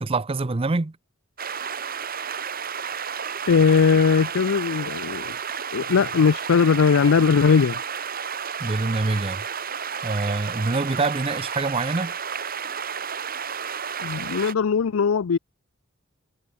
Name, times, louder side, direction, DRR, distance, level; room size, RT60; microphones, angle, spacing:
voice 1, 0.0-1.0 8.6-9.4 10.0-12.1, right 3 dB, 30° right, 0.6 m, -25 dB
sound 1, 1.4-14.5, right 7 dB, 45° right, 2.9 m, -32 dB
voice 2, 3.5-5.4 5.7-7.8 14.0-15.4, left 6 dB, 90° left, 0.5 m, -19 dB
head